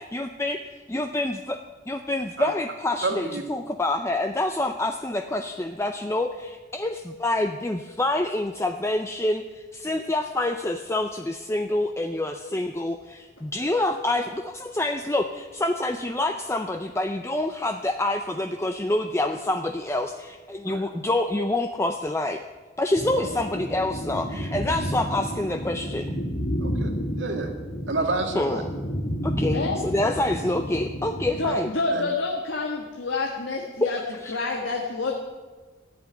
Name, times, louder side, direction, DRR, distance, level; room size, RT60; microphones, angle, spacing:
voice 1, 0.0-0.6 0.9-1.6 1.9-22.4 22.8-26.1 28.3-28.7 29.2-31.7 34.2-34.4, left 1 dB, 15° left, 5 dB, 0.5 m, -27 dB
voice 2, 3.0-3.4 20.7-20.8 26.6-27.5 27.9-28.6 31.9-32.0, right 3 dB, 85° right, 4 dB, 1.9 m, -29 dB
sound 1, 22.9-31.5, equal, 60° left, 2.4 m, -31 dB
voice 3, 29.5-29.8 31.4-34.0 34.3-35.1, left 3 dB, 90° left, 0 dB, 1.6 m, -28 dB
14.0 x 8.3 x 9.8 m, 1.3 s
head